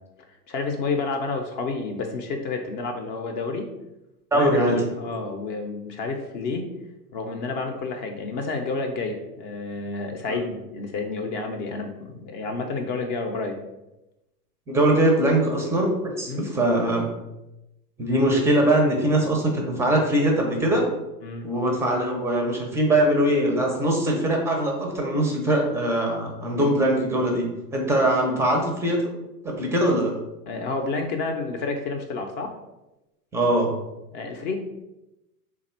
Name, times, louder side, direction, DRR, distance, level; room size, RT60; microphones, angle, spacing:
voice 1, 0.5-3.7 4.3-6.7 7.1-13.6 16.3-16.5 21.2-21.5 30.5-32.5 34.1-34.5, left 3 dB, 45° left, 4 dB, 0.6 m, -30 dB
voice 2, 4.3-4.8 10.3-10.4 14.7-17.1 18.0-20.9 21.4-27.5 27.7-29.1 29.4-30.1 33.3-33.7, right 1 dB, 5° right, 1 dB, 0.4 m, -22 dB
3.3 x 2.3 x 4.2 m, 0.94 s
hypercardioid pair, 110°, 47 cm